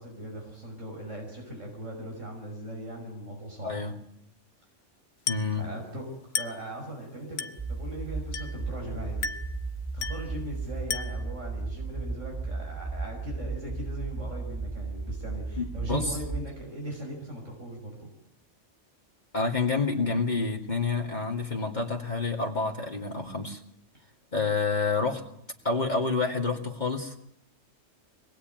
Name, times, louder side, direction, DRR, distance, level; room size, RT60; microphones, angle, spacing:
voice 1, 0.0-3.8 5.6-9.3 9.9-18.1, right 1 dB, 90° right, 0 dB, 6.3 m, -39 dB
Glass, 5.3-5.6 6.4-6.7 7.4-7.7 8.3-8.7 9.2-9.6 10.0-10.3 10.9-11.3, left 5 dB, 60° left, 1.4 m, -34 dB
voice 2, 5.3-5.6 15.6-16.2 19.3-23.6 24.3-25.2 25.6-27.2, left 4 dB, 40° left, 0 dB, 2.6 m, -28 dB
sound 1, 7.6-16.4, right 3 dB, 25° right, 3.8 m, -35 dB
26.0 x 20.5 x 9.2 m, 0.71 s
omnidirectional pair, 1.3 m